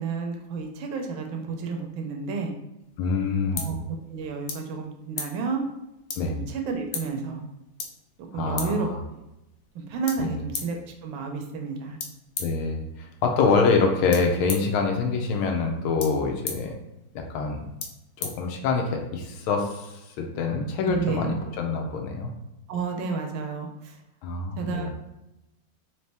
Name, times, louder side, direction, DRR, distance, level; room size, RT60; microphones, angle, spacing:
voice 1, 0.0-2.5 3.5-5.6 6.3-7.4 8.3-8.9 9.7-12.0 20.9-21.3 22.7-24.0 24.6-24.9, right 5 dB, 80° right, 3 dB, 1.4 m, -31 dB
sound 1, 2.8-19.1, left 5 dB, 70° left, 0.8 m, -41 dB
voice 2, 3.0-3.7 6.2-6.3 8.3-9.0 10.2-10.4 12.4-16.8 17.1-17.7 18.2-22.3 24.2-24.9, left 4 dB, 90° left, 3 dB, 1.5 m, -25 dB
4.1 x 2.9 x 3.3 m, 0.93 s
omnidirectional pair, 2.3 m